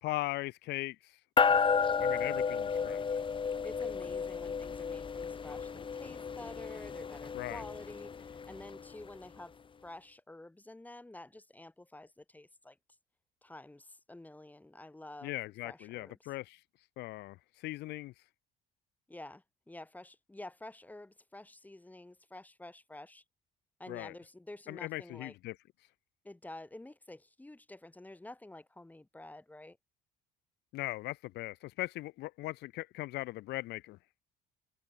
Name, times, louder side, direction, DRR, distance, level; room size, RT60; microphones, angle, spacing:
voice 1, 0.0-1.2 2.0-3.2 7.3-7.6 15.2-16.6 17.0-18.1 23.9-24.1 24.7-25.5 30.7-34.0, left 18 dB, 85° left, 2.5 m, -39 dB
sound 1, 1.4-9.1, left 6 dB, 30° left, 1.4 m, -32 dB
voice 2, 3.6-9.6 9.8-12.8 13.4-15.4 15.6-16.3 19.1-23.2 23.8-25.3 26.2-29.8, left 2 dB, 10° left, 3.9 m, -49 dB
cardioid pair, 110°, 17 cm